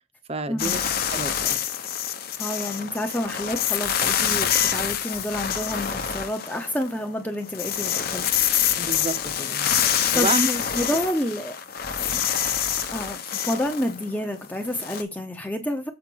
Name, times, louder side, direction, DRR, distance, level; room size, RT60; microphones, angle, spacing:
voice 1, 0.3-0.8 1.1-1.6 8.8-9.8 10.1-10.5, right 3 dB, 30° right, 0.8 m, -29 dB
sound 1, 0.6-7.0 7.3-15.0, left 9 dB, 50° left, 1.0 m, -26 dB
voice 2, 2.4-8.3 10.1-11.6 12.1-12.2 12.9-15.9, left 1 dB, 10° left, 0.8 m, -29 dB
7.5 x 5.0 x 4.5 m
head